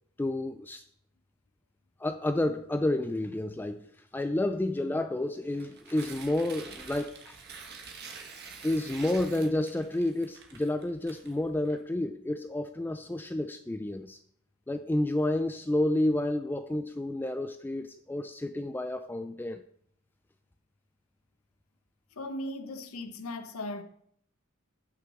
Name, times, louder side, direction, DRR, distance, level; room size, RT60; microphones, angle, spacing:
voice 1, 0.2-0.8 2.0-7.4 8.6-14.2 14.7-19.6, left 1 dB, 10° left, 0.3 m, -30 dB
Tearing, 5.5-11.8, right 5 dB, 50° right, 1.4 m, -47 dB
voice 2, 22.2-23.8, left 1 dB, 90° left, 0.9 m, -37 dB
6.0 x 6.0 x 6.9 m
head